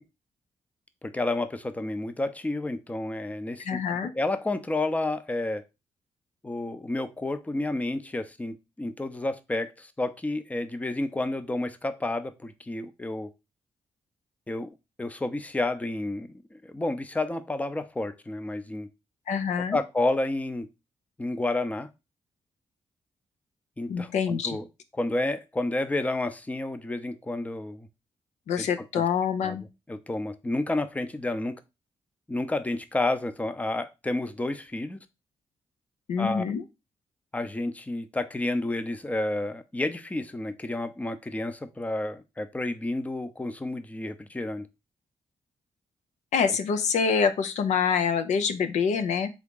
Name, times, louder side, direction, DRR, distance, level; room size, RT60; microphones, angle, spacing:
voice 1, 1.0-5.6 6.4-13.3 14.5-14.7 15.0-18.9 19.6-20.7 21.2-21.9 23.8-24.7 24.9-27.9 28.6-29.1 29.4-31.6 32.3-35.0 36.2-36.4 37.3-44.7, left 2 dB, 10° left, 0.6 m, -30 dB
voice 2, 3.7-4.1 19.3-19.8 23.9-24.6 28.5-29.6 36.1-36.6 46.3-49.3, left 6 dB, 80° left, 0.6 m, -26 dB
3.7 x 3.5 x 3.6 m
cardioid pair, 75°, 12 cm